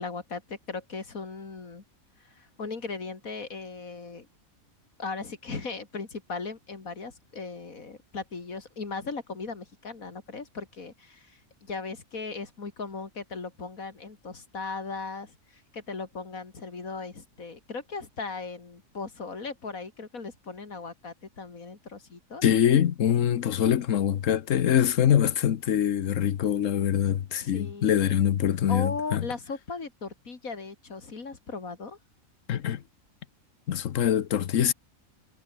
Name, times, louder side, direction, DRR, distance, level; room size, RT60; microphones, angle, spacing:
voice 1, 0.0-1.8 2.2-4.3 5.0-22.4 27.4-28.0 28.7-32.0, left 4 dB, 90° left, 3.2 m, -38 dB
voice 2, 22.4-29.3 32.5-32.8 33.7-34.7, left 10 dB, 70° left, 1.2 m, -24 dB
omnidirectional pair, 1.4 m